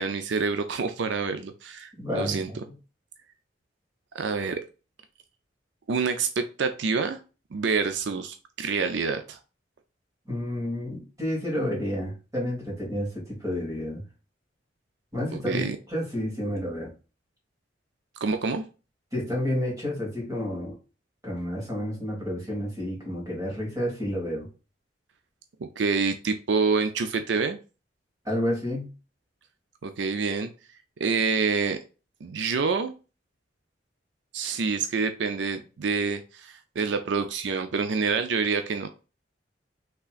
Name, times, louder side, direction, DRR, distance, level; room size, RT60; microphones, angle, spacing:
voice 1, 0.0-2.5 4.1-4.6 5.9-7.2 7.5-9.4 15.3-15.8 18.2-18.7 25.8-27.6 29.8-30.5 31.0-31.8 32.2-32.9 34.3-38.9, right 4 dB, 75° right, 8 dB, 0.5 m, -27 dB
voice 2, 2.0-2.6 10.3-14.0 15.1-16.9 19.1-20.7 21.2-24.5 28.2-28.9, left 1 dB, 20° right, -4 dB, 2.6 m, -30 dB
5.6 x 3.6 x 2.5 m, 0.32 s
head